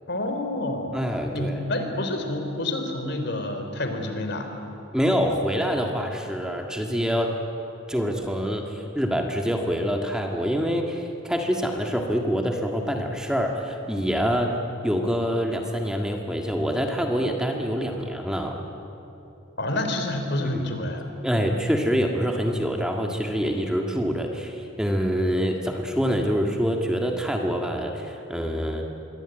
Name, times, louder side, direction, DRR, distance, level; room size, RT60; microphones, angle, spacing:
voice 1, 0.1-0.9 1.3-4.5 19.6-21.0, left 1 dB, 60° left, 5 dB, 3.5 m, -28 dB
voice 2, 0.9-1.6 4.9-7.4 7.9-14.6 14.8-18.6 20.5-20.7 21.2-28.9, equal, 5° right, 2 dB, 1.8 m, -26 dB
26.5 x 23.0 x 9.0 m, 2.9 s
head